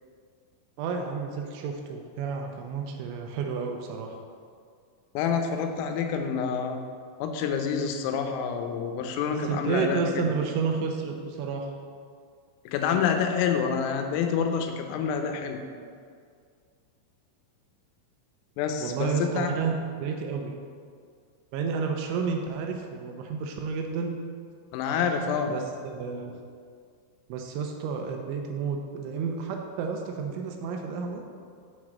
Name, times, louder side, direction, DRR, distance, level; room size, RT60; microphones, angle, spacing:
voice 1, 0.8-4.2 9.3-11.7 18.8-20.5 21.5-24.2 25.5-26.4 27.3-31.2, right 5 dB, 85° right, 3 dB, 2.9 m, -31 dB
voice 2, 5.2-6.8 7.2-10.3 12.7-15.6 18.6-19.5 24.7-25.5, left 6 dB, 90° left, 5 dB, 3.5 m, -27 dB
7.7 x 6.1 x 6.3 m, 2.2 s
omnidirectional pair, 5.8 m